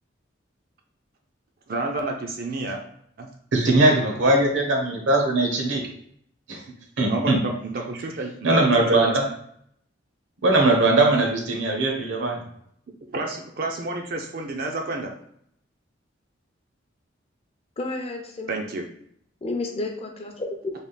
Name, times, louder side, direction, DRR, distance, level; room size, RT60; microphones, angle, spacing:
voice 1, 1.7-2.8 3.2-3.3 7.0-9.2 13.1-15.1 18.5-18.8, right 2 dB, 50° right, 2 dB, 0.5 m, -30 dB
voice 2, 3.5-5.9 6.5-6.6 7.0-7.4 8.4-9.3 10.4-12.4, right 2 dB, 75° right, 1 dB, 0.9 m, -20 dB
voice 3, 17.8-18.6 19.4-20.7, left 2 dB, 30° left, 3 dB, 0.5 m, -31 dB
3.4 x 2.4 x 3.9 m, 0.67 s
head